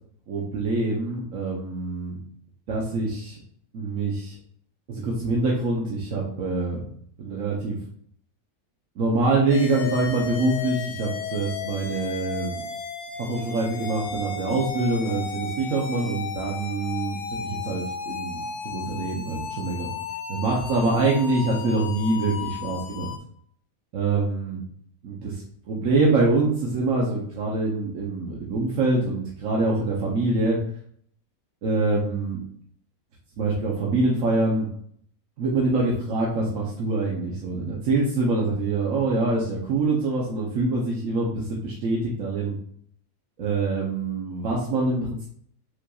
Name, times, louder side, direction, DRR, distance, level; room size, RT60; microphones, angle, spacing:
voice 1, 0.3-2.2 2.7-3.4 3.7-4.3 4.9-6.8 7.2-7.8 9.0-12.6 13.3-19.9 20.3-23.1 23.9-24.6 25.0-30.6 31.6-32.4 33.4-34.7 35.4-42.6 43.4-45.3, right 3 dB, 65° right, -3 dB, 1.2 m, -25 dB
sound 1, 9.5-23.2, left 5 dB, 90° left, 1.1 m, -34 dB
5.5 x 3.9 x 2.3 m, 0.62 s
omnidirectional pair, 1.5 m